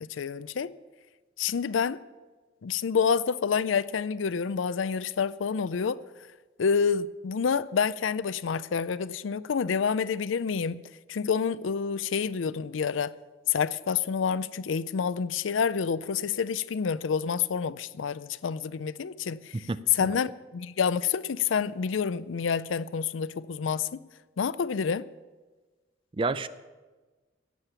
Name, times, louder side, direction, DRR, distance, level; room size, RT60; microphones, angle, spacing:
voice 1, 0.0-0.7 1.4-2.0 2.6-6.0 6.6-10.8 11.1-13.1 13.5-19.7 19.9-24.0 24.4-25.1, left 6 dB, 90° left, 0.4 m, -28 dB
voice 2, 19.5-20.2 26.2-26.5, right 3 dB, 25° right, 0.4 m, -30 dB
17.5 x 7.5 x 7.0 m
head